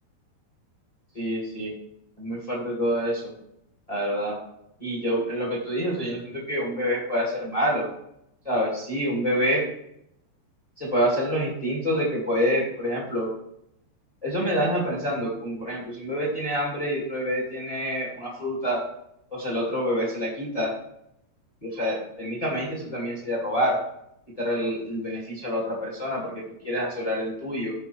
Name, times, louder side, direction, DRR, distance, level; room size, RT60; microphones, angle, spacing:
voice 1, 1.1-1.7 2.2-3.3 3.9-4.4 4.8-7.8 8.4-9.7 10.8-13.3 14.2-18.8 19.3-20.7 21.6-23.8 24.4-27.7, equal, 15° left, -3 dB, 1.5 m, -27 dB
14.0 x 5.1 x 3.4 m, 0.77 s
omnidirectional pair, 4.8 m